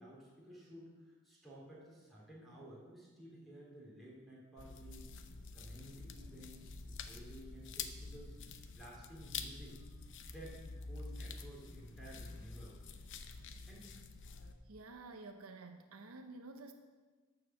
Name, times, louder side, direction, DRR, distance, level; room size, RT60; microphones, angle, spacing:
voice 1, 0.0-5.3 5.5-9.8 10.2-12.8 13.4-13.9, right 1 dB, ahead, -6 dB, 3.4 m, -54 dB
sound 1, 4.6-14.5, left 4 dB, 60° left, 0.7 m, -48 dB
voice 2, 14.7-16.7, right 3 dB, 75° right, 6 dB, 0.8 m, -51 dB
12.0 x 4.8 x 7.5 m, 1.3 s
head